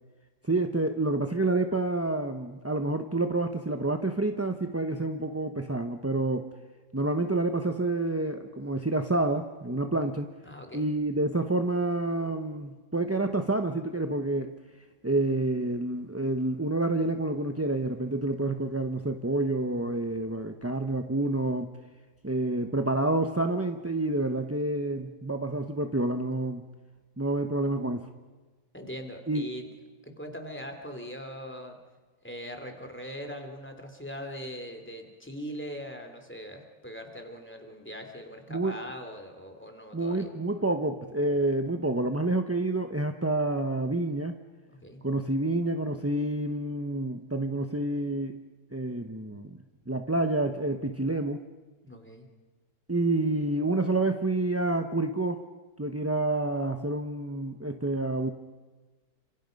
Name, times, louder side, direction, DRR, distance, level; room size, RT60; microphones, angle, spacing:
voice 1, 0.4-6.5 6.9-10.3 10.7-14.5 15.0-21.7 22.2-26.6 27.2-28.1 29.3-29.4 38.5-38.8 39.9-44.4 45.0-48.4 48.7-49.6 49.9-51.4 52.9-55.4 55.8-58.3, right 2 dB, 15° right, 5 dB, 0.6 m, -28 dB
voice 2, 10.4-10.9 28.7-29.7 30.0-31.8 32.2-40.3 44.7-45.0 51.8-52.3, equal, 5° left, 4 dB, 3.2 m, -41 dB
29.0 x 26.5 x 5.4 m, 1.3 s
omnidirectional pair, 1.8 m